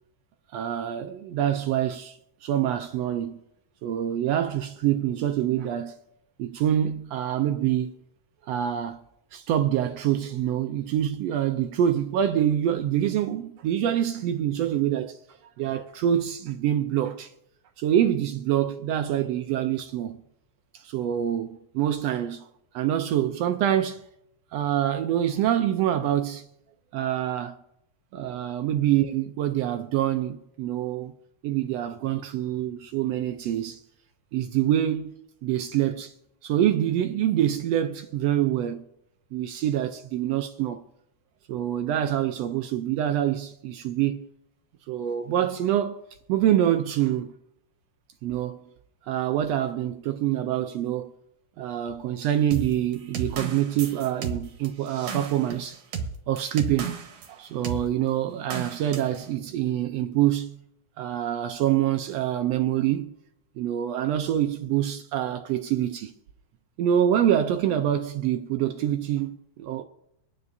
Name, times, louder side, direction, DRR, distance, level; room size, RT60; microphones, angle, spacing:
voice 1, 0.5-3.4 3.8-5.9 6.4-7.9 8.4-9.0 9.3-15.2 15.6-17.3 17.8-20.2 20.7-22.5 22.7-24.0 24.5-26.5 26.9-27.5 28.1-31.1 31.4-33.8 34.3-35.1 35.4-36.1 36.4-38.8 39.3-40.8 41.5-44.3 44.9-47.3 48.2-48.6 49.1-51.1 51.6-55.8 56.3-56.9 57.3-60.6 61.0-63.1 63.6-66.1 66.8-69.8, right 11 dB, 75° right, 1.5 m, -26 dB
sound 1, 52.5-57.3 57.6-57.9 58.5-59.2, right 6 dB, 60° right, 2.2 m, -33 dB
24.5 x 9.6 x 2.7 m
omnidirectional pair, 3.4 m